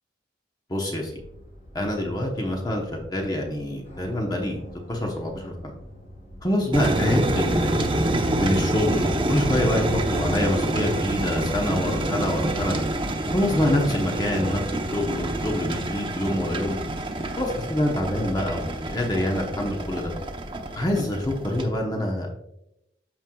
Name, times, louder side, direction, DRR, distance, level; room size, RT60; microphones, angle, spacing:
voice 1, 0.7-1.1 1.7-4.6 4.9-5.7 6.4-8.0 8.4-12.8 13.3-14.6 14.9-16.8 17.4-20.1 20.7-22.3, left 1 dB, 20° left, 0 dB, 0.9 m, -26 dB
sound 1, 1.1-20.8, equal, 40° left, 2.8 m, -45 dB
sound 2, 6.7-21.6, right 1 dB, 25° right, 0.8 m, -27 dB
13.5 x 4.5 x 2.3 m, 0.85 s
head